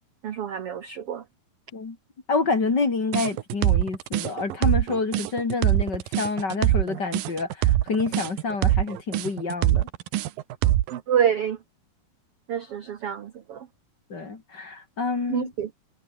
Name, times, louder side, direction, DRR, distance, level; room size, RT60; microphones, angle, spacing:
voice 1, 0.2-1.2 10.9-11.6 12.5-13.7 15.3-15.7, right 9 dB, 90° right, 1.2 m, -27 dB
voice 2, 2.3-9.9 14.1-15.5, left 4 dB, 30° left, 3.0 m, -28 dB
sound 1, 3.1-11.0, right 14 dB, 70° right, 2.6 m, -23 dB
omnidirectional pair, 4.5 m